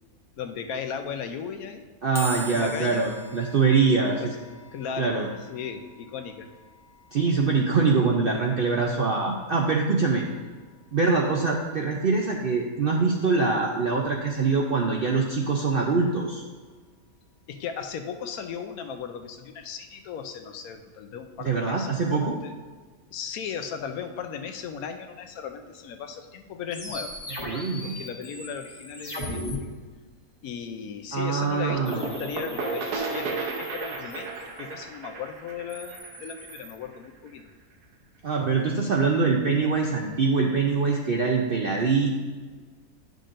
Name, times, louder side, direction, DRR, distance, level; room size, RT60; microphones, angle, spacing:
voice 1, 0.4-1.8 2.1-3.0 3.8-3.9 4.7-5.2 5.5-6.5 17.5-22.5 23.1-29.7 30.4-37.5, left 7 dB, 75° left, 7 dB, 1.1 m, -36 dB
voice 2, 2.0-4.3 5.0-5.3 7.1-10.2 10.9-16.4 21.4-22.4 27.5-28.0 31.1-32.0 38.2-42.2, right 4 dB, 60° right, 0 dB, 0.6 m, -24 dB
sound 1, 2.2-15.5, right 2 dB, 5° right, 0.6 m, -47 dB
sound 2, 26.7-29.6 31.9-34.7 35.5-36.7, left 1 dB, 15° left, 1.1 m, -39 dB
sound 3, 31.7-37.3, right 4 dB, 85° right, 1.4 m, -34 dB
10.0 x 6.4 x 2.6 m, 1.4 s
omnidirectional pair, 1.6 m